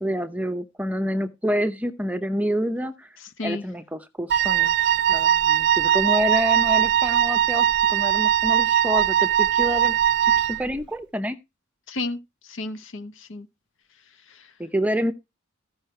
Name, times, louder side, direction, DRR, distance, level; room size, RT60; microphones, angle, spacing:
voice 1, 0.0-3.1 3.4-10.0 10.2-11.4 14.6-15.1, equal, 5° right, 0.7 m, -28 dB
voice 2, 3.2-3.6 11.9-13.5 14.3-14.5, left 2 dB, 65° left, 1.1 m, -33 dB
Wind instrument woodwind instrument, 4.3-10.7, right 10 dB, 55° right, 0.5 m, -20 dB
14.5 x 5.7 x 4.4 m
head